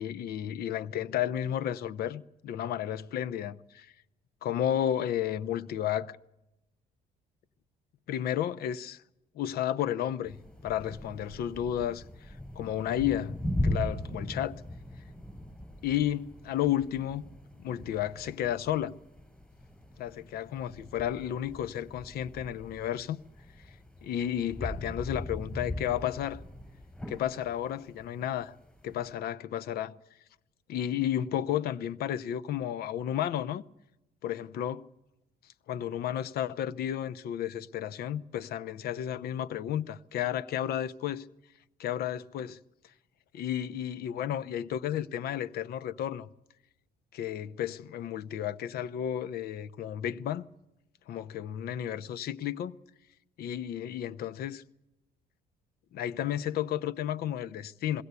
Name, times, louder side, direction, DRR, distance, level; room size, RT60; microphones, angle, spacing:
voice 1, 0.0-3.9 4.4-6.2 8.1-9.0 9.3-10.4 10.6-13.4 13.6-14.5 15.8-17.2 17.6-18.9 20.0-23.2 24.0-26.4 27.1-28.5 28.8-29.9 30.7-33.6 34.2-34.9 35.7-41.3 41.8-42.6 43.3-46.3 47.1-50.5 51.1-52.8 53.4-54.6 55.9-58.0, left 10 dB, 65° left, 0.8 m, -32 dB
sound 1, 10.2-29.1, left 1 dB, 5° left, 7.6 m, -39 dB
21.5 x 17.0 x 8.2 m
cardioid pair, 110°, 17 cm